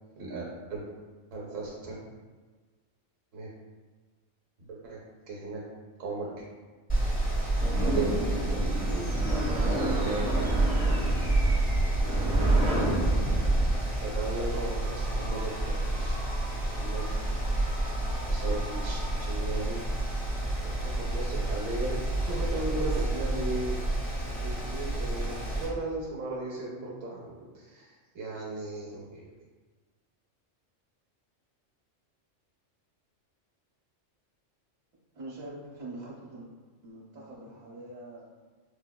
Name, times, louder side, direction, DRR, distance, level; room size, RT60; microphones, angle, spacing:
voice 1, 0.2-0.8 1.3-2.0 3.3-3.5 4.6-5.0 5.3-5.6 6.0-6.4 7.9-9.1 9.5-10.6 13.6-13.7 14.0-15.5 15.9-16.2 16.8-17.5 18.3-19.8 20.6-22.0 22.3-23.8 24.4-29.3, right 2 dB, 85° right, -4 dB, 1.0 m, -36 dB
Mechanical fan, 6.9-25.7, right 1 dB, 10° left, 0.7 m, -30 dB
sound 1, 7.6-13.8, right 2 dB, 40° right, 0.8 m, -28 dB
sound 2, 8.6-20.8, equal, 40° left, 1.1 m, -48 dB
voice 2, 35.1-36.5 36.8-38.3, right 2 dB, 60° right, -5 dB, 1.1 m, -43 dB
4.9 x 2.1 x 2.2 m, 1.4 s
omnidirectional pair, 1.3 m